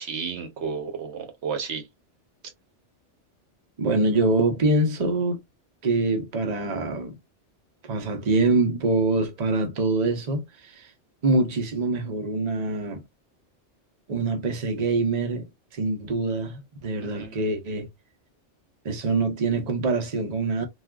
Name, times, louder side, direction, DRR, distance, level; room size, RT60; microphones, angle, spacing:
voice 1, 0.0-1.9 17.0-17.6, right 6 dB, 70° right, 1.1 m, -33 dB
voice 2, 3.8-5.4 5.8-7.2 7.9-10.9 11.2-13.0 14.1-15.5 15.7-17.9 18.8-20.7, right 3 dB, 40° right, 0.8 m, -24 dB
3.4 x 2.5 x 2.3 m
omnidirectional pair, 1.2 m